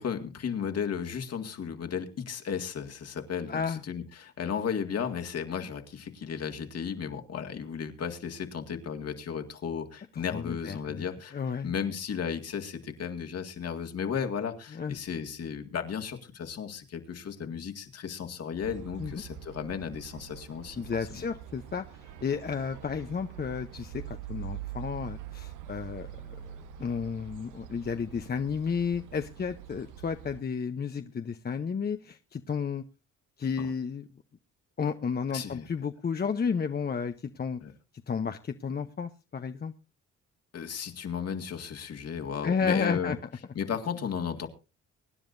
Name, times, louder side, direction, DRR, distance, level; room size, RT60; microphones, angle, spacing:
voice 1, 0.0-20.8 21.1-21.2 33.6-33.7 35.3-35.7 37.6-37.7 40.5-43.1 43.5-44.5, left 7 dB, 55° left, 6 dB, 2.0 m, -34 dB
voice 2, 3.5-3.8 10.3-11.0 11.3-11.7 14.7-15.0 19.0-19.1 20.8-26.5 26.8-32.8 33.4-34.0 34.8-37.6 38.1-39.7 42.4-43.2, left 6 dB, 30° left, 8 dB, 0.8 m, -32 dB
sound 1, 18.6-30.4, right 11 dB, 85° right, 1.1 m, -44 dB
24.5 x 10.0 x 2.6 m, 0.31 s
cardioid pair, 90°, 30 cm